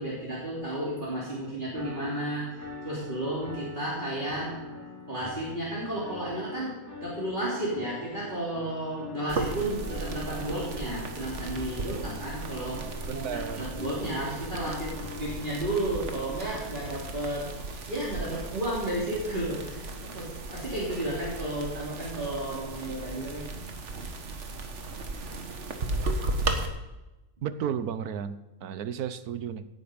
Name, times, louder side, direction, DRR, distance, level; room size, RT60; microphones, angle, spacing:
voice 1, 0.0-4.5 5.1-6.7 7.0-17.5 17.9-23.5, right 1 dB, 35° right, -7 dB, 3.4 m, -33 dB
sound 1, 1.7-15.5, left 3 dB, 10° left, 2.8 m, -43 dB
sound 2, 9.3-26.7, right 2 dB, 50° right, 1.6 m, -36 dB
voice 2, 13.1-13.7 27.4-29.7, right 8 dB, 85° right, 13 dB, 1.3 m, -33 dB
17.0 x 9.8 x 5.2 m, 1.0 s
omnidirectional pair, 1.6 m